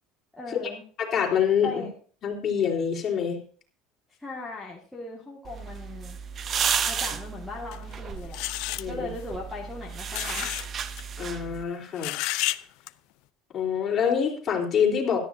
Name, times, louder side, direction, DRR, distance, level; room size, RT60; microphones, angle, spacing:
voice 1, 0.4-0.8 1.6-1.9 4.2-6.2 6.8-8.5 8.9-10.5, left 3 dB, ahead, -5 dB, 2.0 m, -38 dB
voice 2, 1.0-1.8 2.2-3.4 8.8-9.1 11.2-12.2 13.5-15.2, left 7 dB, 30° left, -1 dB, 3.8 m, -25 dB
sound 1, 5.4-11.6, right 7 dB, 25° right, 0.6 m, -33 dB
sound 2, 7.7-7.8 8.3-8.8 10.1-10.7 10.9-11.0 12.0-12.6 12.9-13.0, left 18 dB, 55° left, 0.6 m, -30 dB
17.0 x 13.0 x 2.7 m, 0.42 s
cardioid pair, 165°, 0 cm